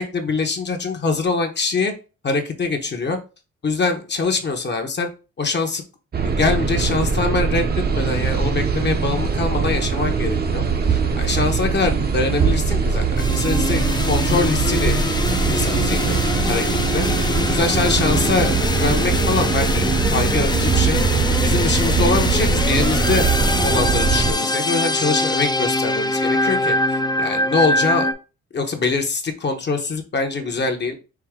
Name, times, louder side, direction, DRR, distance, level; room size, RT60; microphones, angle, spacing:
voice 1, 0.0-1.9 2.2-3.2 3.6-5.1 5.4-5.8 6.2-15.0 15.5-16.2 16.5-17.0 17.4-21.0 21.3-23.3 23.6-28.1 28.5-31.0, left 4 dB, 35° left, 5 dB, 0.9 m, -23 dB
sound 1, 6.1-24.3, right 5 dB, 35° right, 0.7 m, -21 dB
sound 2, 13.2-28.1, left 2 dB, 15° left, 0.5 m, -23 dB
4.7 x 2.7 x 3.6 m, 0.32 s
cardioid pair, 90°, 30 cm